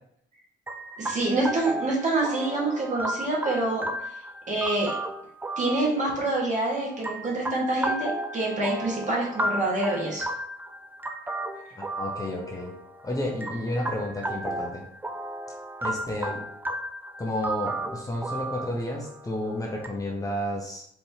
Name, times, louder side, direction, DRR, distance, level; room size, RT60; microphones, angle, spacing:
sound 1, 0.7-19.9, right 1 dB, 10° right, 0.3 m, -34 dB
voice 1, 1.0-3.9 4.5-4.9 5.6-10.3, right 2 dB, 40° right, -3 dB, 1.5 m, -26 dB
voice 2, 11.8-12.7 13.0-14.8 15.8-16.4 17.2-20.9, left 1 dB, 15° left, -2 dB, 0.8 m, -31 dB
4.3 x 3.2 x 2.8 m, 0.70 s
cardioid pair, 90°, 20 cm